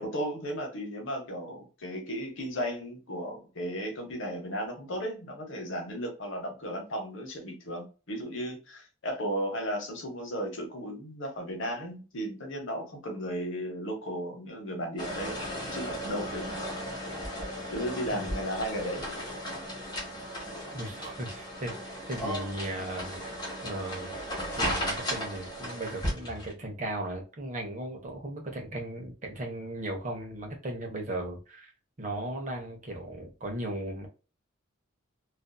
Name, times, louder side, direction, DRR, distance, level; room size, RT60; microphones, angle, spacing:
voice 1, 0.0-15.4 15.7-16.6 17.7-19.3, equal, 65° left, 2 dB, 0.9 m, -35 dB
sound 1, 15.0-26.5, equal, 20° left, 1.0 m, -36 dB
voice 2, 20.7-23.4 23.6-24.2 24.6-31.7 32.0-34.1, right 1 dB, 35° right, 2 dB, 0.7 m, -37 dB
2.5 x 2.5 x 2.2 m, 0.33 s
head